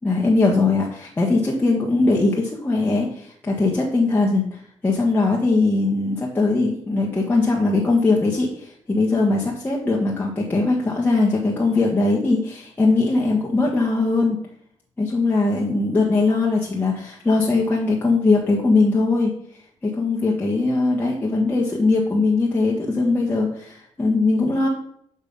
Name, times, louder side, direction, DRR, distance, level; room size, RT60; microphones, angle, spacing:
voice 1, 0.0-14.4 15.0-19.3 19.8-24.7, left 3 dB, 15° left, -3 dB, 1.4 m, -20 dB
7.0 x 5.4 x 5.4 m, 0.68 s
cardioid pair, 125°, 11 cm